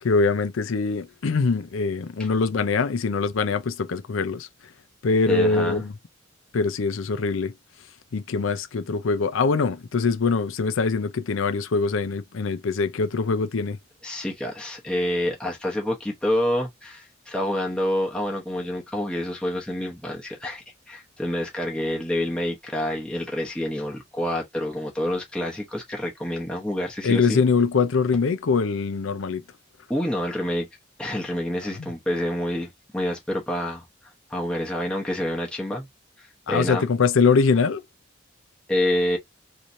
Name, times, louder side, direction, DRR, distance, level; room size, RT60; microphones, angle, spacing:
voice 1, 0.0-4.5 5.0-5.9 6.5-7.5 8.1-13.8 27.0-29.4 31.8-31.9 36.5-37.8, left 4 dB, 90° left, 0.5 m, -23 dB
voice 2, 5.3-5.8 14.0-27.4 29.9-30.7 31.0-33.8 34.3-35.9 36.2-36.9 38.7-39.2, left 1 dB, 5° left, 0.8 m, -27 dB
3.2 x 2.7 x 2.5 m
head